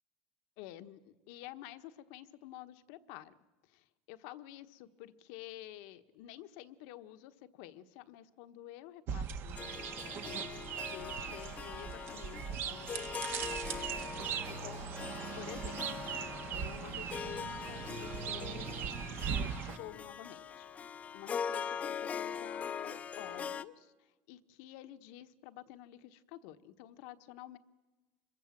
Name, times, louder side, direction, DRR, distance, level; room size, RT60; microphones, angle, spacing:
voice 1, 0.6-3.3 3.6-13.3 14.5-14.9 15.3-16.1 16.5-18.7 19.3-27.6, left 14 dB, 70° left, 11 dB, 1.3 m, -50 dB
sound 1, 9.1-19.8, right 8 dB, 50° right, 1.5 m, -40 dB
Harp, 9.6-23.6, left 7 dB, 30° left, 0.8 m, -42 dB
25.5 x 22.5 x 7.5 m, 1.2 s
supercardioid pair, 115°, 5 cm